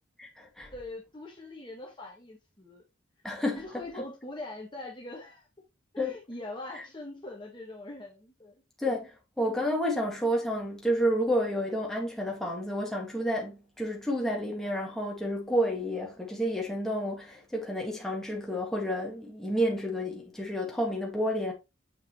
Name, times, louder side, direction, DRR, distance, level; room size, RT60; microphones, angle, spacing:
voice 1, 0.2-0.7 3.2-3.6 6.0-6.1 8.8-9.1 9.4-21.5, equal, ahead, 2.0 m, -30 dB
voice 2, 0.7-2.8 3.5-5.5 5.9-8.5 21.2-21.3, left 2 dB, 25° left, 1.5 m, -42 dB
7.5 x 5.4 x 3.0 m
head